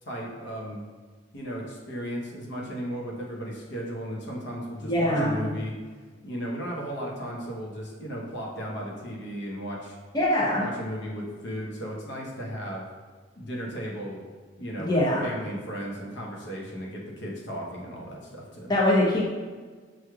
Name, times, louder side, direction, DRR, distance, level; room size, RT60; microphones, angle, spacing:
voice 1, 0.0-0.8 1.3-5.8 6.2-10.0 10.6-12.9 13.3-14.2 14.6-18.7, equal, 65° left, -2 dB, 0.9 m, -35 dB
voice 2, 4.8-5.4 10.1-10.7 14.8-15.3 18.7-19.3, left 1 dB, 20° left, -4 dB, 0.6 m, -23 dB
6.1 x 3.1 x 2.3 m, 1.5 s
head